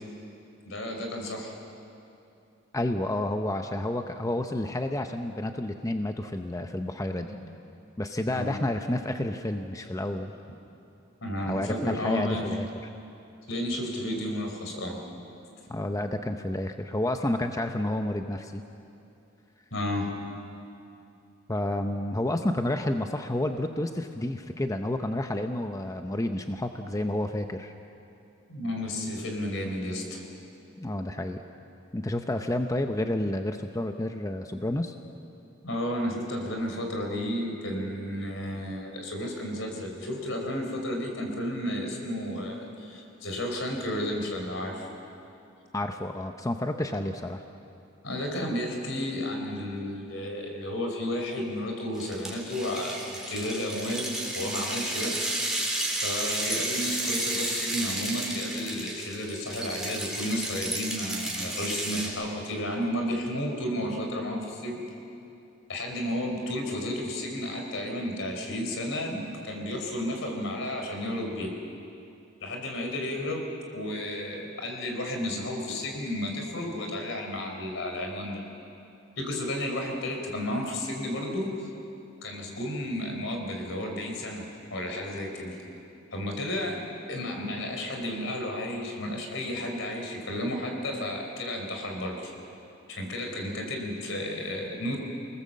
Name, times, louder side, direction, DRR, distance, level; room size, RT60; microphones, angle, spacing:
voice 1, 0.7-1.6 7.2-7.5 8.3-8.6 11.2-12.5 13.5-15.0 19.7-20.1 28.5-30.2 35.6-44.9 48.0-55.1 56.0-64.8 65.7-71.5 72.4-73.5 73.7-78.4 79.2-81.7 82.2-85.6 86.1-86.8 87.1-92.3 92.9-95.0, left 1 dB, 70° left, 2 dB, 4.3 m, -32 dB
voice 2, 2.7-7.3 8.0-10.3 11.5-12.7 15.7-18.6 21.5-27.7 30.8-31.4 31.9-35.0 45.7-47.4, left 1 dB, 15° left, 6 dB, 0.7 m, -30 dB
sound 1, 52.0-62.1, right 1 dB, ahead, 4.1 m, -32 dB
27.0 x 19.0 x 7.6 m, 2.8 s
head